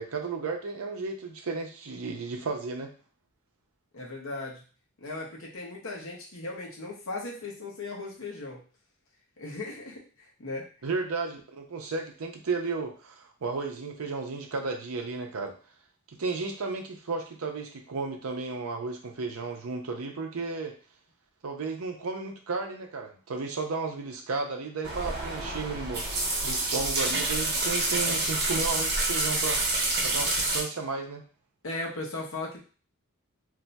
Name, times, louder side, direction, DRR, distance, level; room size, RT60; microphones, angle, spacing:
voice 1, 0.0-2.9 10.8-15.5 16.2-20.7 21.4-26.1 26.4-29.6 30.0-31.2, right 4 dB, 85° right, 3 dB, 0.6 m, -33 dB
voice 2, 3.9-4.6 5.0-8.6 9.4-10.7 31.6-32.6, left 2 dB, 65° left, -2 dB, 0.9 m, -37 dB
sound 1, 24.8-30.6, right 2 dB, 50° right, 1.0 m, -28 dB
2.6 x 2.2 x 4.0 m, 0.38 s
head